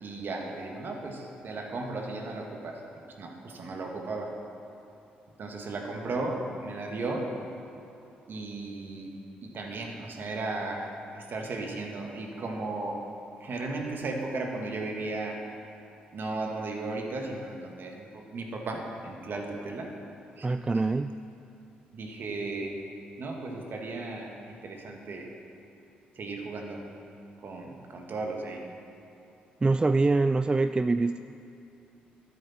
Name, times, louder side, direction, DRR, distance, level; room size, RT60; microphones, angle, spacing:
voice 1, 0.0-2.8 3.2-4.4 5.4-7.3 8.3-9.1 9.4-13.1 13.4-15.4 16.1-19.9 20.4-20.5 21.9-22.8 23.2-25.3 26.2-26.8 27.4-28.6, right 2 dB, 50° right, 2 dB, 1.8 m, -35 dB
voice 2, 20.4-21.1 29.6-31.2, right 3 dB, 20° right, 11 dB, 0.3 m, -24 dB
13.0 x 10.0 x 4.3 m, 2.8 s
hypercardioid pair, 45°, 4 cm